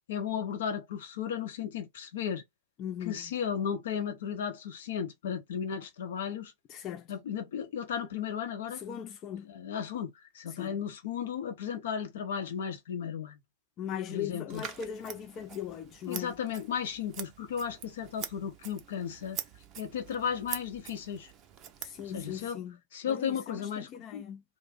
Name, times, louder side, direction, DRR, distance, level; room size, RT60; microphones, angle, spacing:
voice 1, 0.1-2.4 3.0-6.5 7.1-8.8 9.4-13.4 14.1-14.6 16.1-19.4 19.8-21.3 22.1-22.6 22.9-24.2, left 8 dB, 60° left, 0.7 m, -35 dB
voice 2, 2.8-3.3 6.7-7.1 8.7-9.5 10.5-10.8 13.8-16.3 21.8-22.8 23.1-24.4, left 9 dB, 35° left, 0.4 m, -39 dB
Scissors, 14.5-22.5, right 8 dB, 35° right, 0.5 m, -45 dB
2.4 x 2.1 x 3.5 m
figure-of-eight pair, 90°, 0 cm